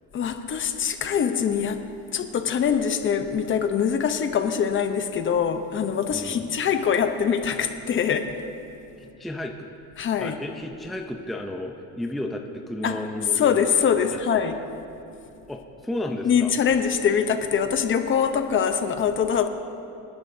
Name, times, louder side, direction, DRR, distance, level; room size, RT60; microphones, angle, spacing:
voice 1, 0.1-1.8 2.1-8.3 10.0-10.4 12.8-13.0 13.4-14.6 16.2-19.5, left 7 dB, 35° left, 7 dB, 0.7 m, -23 dB
voice 2, 6.1-6.6 9.0-9.7 10.2-13.4 14.1-14.4 15.5-16.5, left 1 dB, ahead, 2 dB, 0.5 m, -33 dB
26.0 x 10.5 x 2.7 m, 2.7 s
cardioid pair, 160°, 34 cm